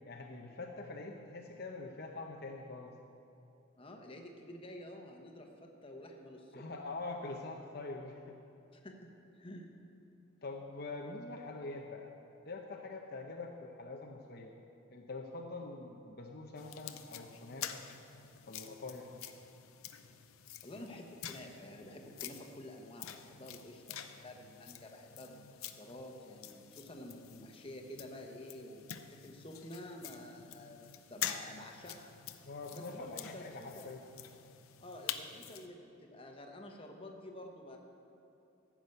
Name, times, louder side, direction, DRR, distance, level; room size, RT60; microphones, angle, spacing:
voice 1, 0.1-2.9 6.5-8.4 10.4-12.1 12.5-14.5 14.9-17.8 18.5-19.4 32.4-34.1, left 3 dB, 50° left, 1 dB, 0.7 m, -44 dB
voice 2, 3.8-6.7 8.7-9.1 9.3-9.7 20.6-32.1 32.7-33.9 34.8-37.8, left 1 dB, 25° left, 2 dB, 1.1 m, -50 dB
sound 1, 16.6-35.7, left 10 dB, 85° left, 0.6 m, -47 dB
15.0 x 6.2 x 8.0 m, 3.0 s
head